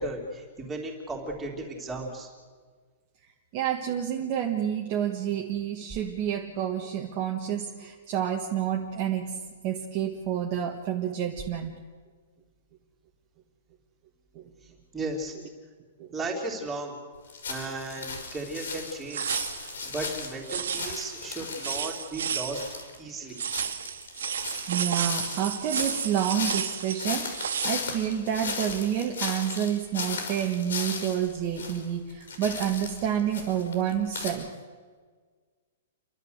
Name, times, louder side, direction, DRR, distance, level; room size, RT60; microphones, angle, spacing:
voice 1, 0.0-2.3 14.6-15.3 16.1-17.0 17.5-22.6 23.0-23.3, right 2 dB, 10° right, -1 dB, 3.3 m, -35 dB
voice 2, 3.5-9.4 9.6-11.8 14.3-14.5 16.0-16.1 24.7-34.5, right 9 dB, 30° right, 1 dB, 1.5 m, -29 dB
sound 1, 17.3-22.1 22.5-31.8 32.1-34.3, left 4 dB, 85° left, 5.2 m, -36 dB
sound 2, 19.1-19.8 20.5-21.2 21.6-22.8 23.4-27.7, right 7 dB, 85° right, 1.6 m, -32 dB
30.0 x 12.0 x 8.0 m, 1.6 s
hypercardioid pair, 170°, 0 cm